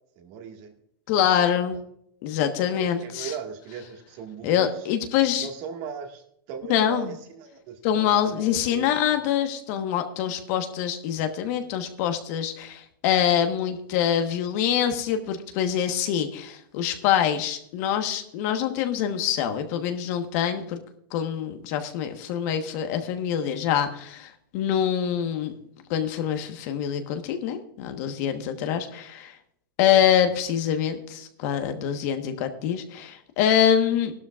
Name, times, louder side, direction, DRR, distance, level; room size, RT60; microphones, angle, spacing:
voice 1, 0.2-0.7 2.8-4.9 5.4-9.2 30.3-30.4, right 7 dB, 45° right, 3 dB, 1.8 m, -39 dB
voice 2, 1.1-1.8 2.2-3.3 4.4-5.5 6.7-7.1 7.8-20.8 21.1-25.5 25.9-29.3 29.8-34.1, left 9 dB, 50° left, 7 dB, 1.3 m, -25 dB
15.5 x 12.0 x 2.4 m, 0.70 s
hypercardioid pair, 140°, 12 cm